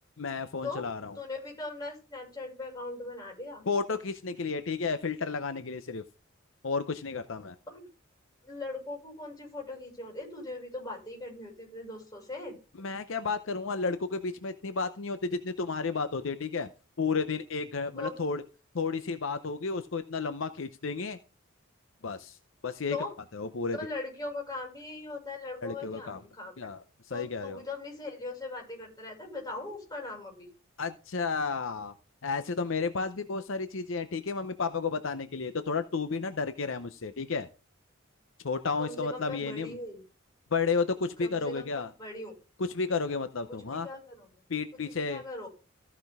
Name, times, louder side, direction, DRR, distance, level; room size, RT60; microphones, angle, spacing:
voice 1, 0.2-1.2 3.7-6.0 6.6-7.5 12.8-16.7 17.0-18.4 18.7-21.2 22.0-22.4 22.6-23.0 23.3-23.8 25.6-26.2 26.6-27.6 30.8-31.9 32.2-37.5 38.4-39.8 40.5-41.9 42.6-43.9 44.5-45.2, left 4 dB, 70° left, 10 dB, 0.7 m, -32 dB
voice 2, 1.1-3.6 7.7-7.9 8.4-12.6 18.0-18.2 22.9-23.1 23.7-26.7 27.1-30.5 38.8-40.0 41.2-42.3 43.5-44.3 44.9-45.5, left 2 dB, 20° left, 0 dB, 6.0 m, -40 dB
14.5 x 6.0 x 3.5 m, 0.33 s
head